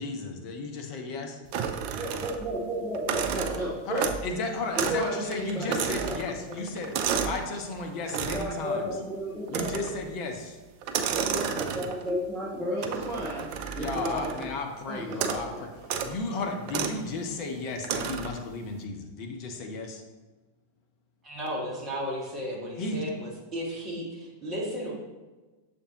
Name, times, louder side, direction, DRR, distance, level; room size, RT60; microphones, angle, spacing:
voice 1, 0.0-1.4 3.9-8.9 9.5-10.6 13.8-15.7 16.0-20.0 22.8-23.0, left 3 dB, 40° left, 3 dB, 0.7 m, -34 dB
sound 1, 1.5-2.6 2.9-4.3 4.7-5.1 5.3-7.5 8.1-8.6 9.5-10.0 10.8-12.1 12.8-14.5 15.1-15.5 15.8-16.1 16.7-17.0 17.8-18.4, right 7 dB, 45° right, 0.3 m, -31 dB
voice 2, 2.0-4.2 4.8-6.2 6.5-6.6 8.2-9.9 11.1-14.5 14.9-15.7, equal, 5° right, -8 dB, 0.8 m, -33 dB
voice 3, 21.2-24.9, equal, 25° right, -3 dB, 1.2 m, -34 dB
6.6 x 2.6 x 2.9 m, 1.2 s
figure-of-eight pair, 90°, 0 cm